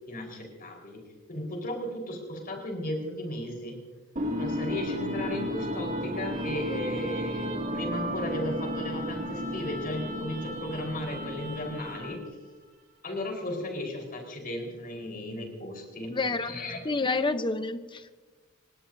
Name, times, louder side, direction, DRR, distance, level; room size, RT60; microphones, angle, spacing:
voice 1, 0.1-1.0 1.3-3.8 4.3-12.2 13.0-16.2 16.4-16.8, left 1 dB, 45° left, 2 dB, 4.5 m, -35 dB
sound 1, 4.2-12.3, equal, 40° right, 2.3 m, -33 dB
voice 2, 16.1-18.2, left 3 dB, 25° left, 10 dB, 0.8 m, -29 dB
29.0 x 17.5 x 2.7 m, 1.3 s
head